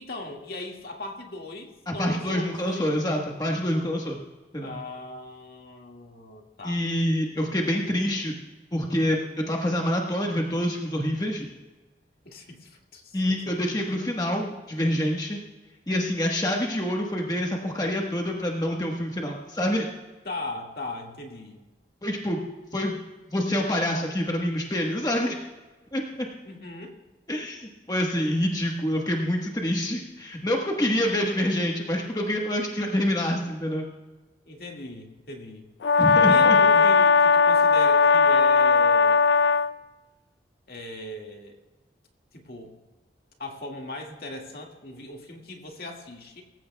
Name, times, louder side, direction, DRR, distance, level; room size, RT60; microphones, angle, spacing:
voice 1, 0.0-3.0 4.6-6.8 12.3-13.8 20.2-21.6 26.4-27.0 34.5-35.7 36.3-39.2 40.7-41.6 42.3-42.8 43.4-46.4, left 1 dB, 55° left, 1 dB, 2.0 m, -39 dB
voice 2, 1.9-4.2 4.5-4.7 6.6-8.3 8.7-9.2 9.5-11.5 13.1-15.4 15.9-19.8 22.0-22.4 22.7-23.0 23.3-25.4 25.9-26.0 27.3-33.9 36.0-36.6, equal, 20° left, 0 dB, 1.3 m, -26 dB
Brass instrument, 35.8-39.7, left 5 dB, 75° left, 0.4 m, -18 dB
24.0 x 14.5 x 2.3 m, 1.2 s
head